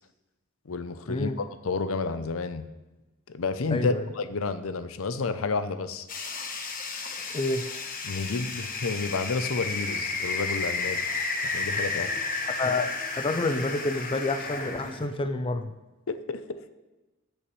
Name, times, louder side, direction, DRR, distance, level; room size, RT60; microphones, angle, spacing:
voice 1, 0.7-2.6 3.3-6.1 8.0-11.0 11.4-12.1 16.1-16.6, left 4 dB, 75° left, 11 dB, 0.6 m, -30 dB
voice 2, 3.7-4.0 7.3-7.6 12.6-12.9 13.2-15.7, left 2 dB, 25° left, 8 dB, 0.4 m, -28 dB
sound 1, 6.1-15.1, left 3 dB, 40° left, 1.1 m, -32 dB
14.0 x 6.1 x 3.2 m, 1.1 s
head